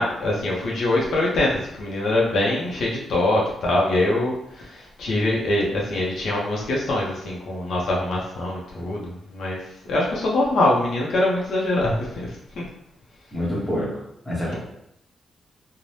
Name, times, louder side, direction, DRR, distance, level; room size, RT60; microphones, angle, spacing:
voice 1, 0.0-9.6 9.9-12.6 14.4-14.6, left 1 dB, 60° left, -3 dB, 0.5 m, -23 dB
voice 2, 13.3-13.9 14.3-14.6, equal, 10° left, -6 dB, 0.8 m, -26 dB
2.6 x 2.0 x 3.1 m, 0.76 s
wide cardioid pair, 175°, 0 cm